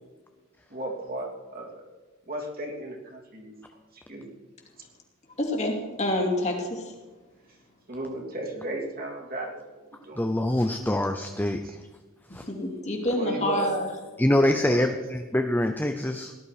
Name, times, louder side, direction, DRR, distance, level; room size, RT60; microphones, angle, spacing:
voice 1, 0.7-1.9 2.3-3.5 4.1-4.3 7.9-10.2 11.6-11.8 13.1-13.8 14.5-15.0, right 1 dB, 45° right, -1 dB, 3.0 m, -35 dB
voice 2, 5.5-6.8 12.6-13.9, left 1 dB, 35° left, 0 dB, 2.7 m, -27 dB
voice 3, 10.2-11.6 12.3-12.4 14.2-16.3, left 1 dB, 10° left, 5 dB, 0.6 m, -24 dB
18.0 x 11.5 x 4.9 m, 1.3 s
head